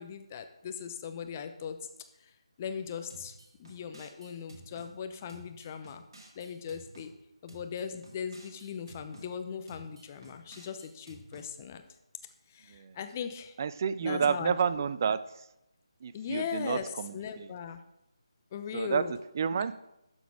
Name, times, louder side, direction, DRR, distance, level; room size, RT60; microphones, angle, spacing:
voice 1, 0.0-1.9 2.2-2.3 2.6-6.0 6.3-7.1 7.4-11.8 12.5-13.6 14.0-14.8 16.1-17.8 18.5-19.2, left 7 dB, 25° left, 8 dB, 0.7 m, -39 dB
sound 1, 3.1-4.9 5.3-7.1 7.5-9.3 9.7-11.5, right 2 dB, 55° right, 2.2 m, -52 dB
voice 2, 13.6-15.2 16.0-17.5 18.7-19.0 19.4-19.7, right 6 dB, 35° right, 15 dB, 0.4 m, -30 dB
11.5 x 4.1 x 4.7 m, 0.87 s
figure-of-eight pair, 155°, 3 cm